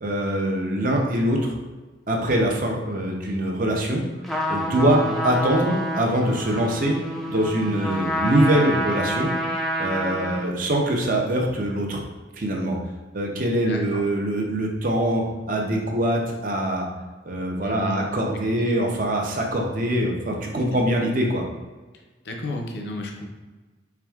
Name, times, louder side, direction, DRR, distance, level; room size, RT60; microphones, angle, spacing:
voice 1, 0.0-1.5 2.1-4.0 4.5-7.0 7.3-9.3 9.8-12.0 12.4-12.8 13.1-16.9 17.2-21.4, right 1 dB, 45° right, 1 dB, 0.6 m, -23 dB
Trumpet, 4.2-10.5, equal, ahead, 0.4 m, -28 dB
voice 2, 13.7-14.0 17.6-18.0 18.6-18.8 20.6-20.9 21.9-23.3, left 1 dB, 65° left, 1 dB, 0.5 m, -34 dB
4.7 x 3.5 x 2.3 m, 1.3 s
head